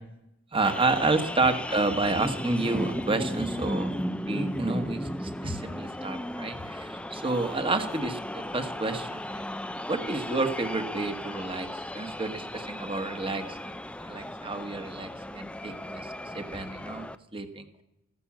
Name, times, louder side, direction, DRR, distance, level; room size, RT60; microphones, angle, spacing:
voice 1, 0.5-9.4 9.9-16.1 16.3-17.0 17.3-17.6, right 3 dB, 25° right, 8 dB, 1.4 m, -30 dB
sound 1, 0.6-17.2, left 1 dB, 5° left, 0.5 m, -35 dB
14.5 x 12.5 x 7.3 m, 0.86 s
head